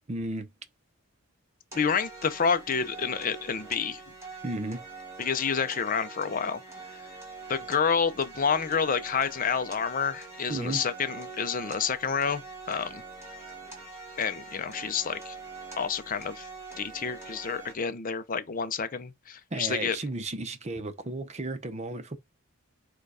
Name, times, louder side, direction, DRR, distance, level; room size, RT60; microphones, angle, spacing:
voice 1, 0.1-0.5 4.4-4.8 10.5-10.8 19.5-22.2, right 2 dB, 30° right, 0.6 m, -34 dB
voice 2, 1.7-4.0 5.2-6.6 7.5-12.4 12.7-13.0 14.2-15.4 15.8-16.5 16.8-20.0, left 6 dB, 40° left, 0.6 m, -29 dB
sound 1, 1.7-17.7, right 3 dB, 15° right, 1.9 m, -44 dB
4.5 x 2.4 x 4.8 m
head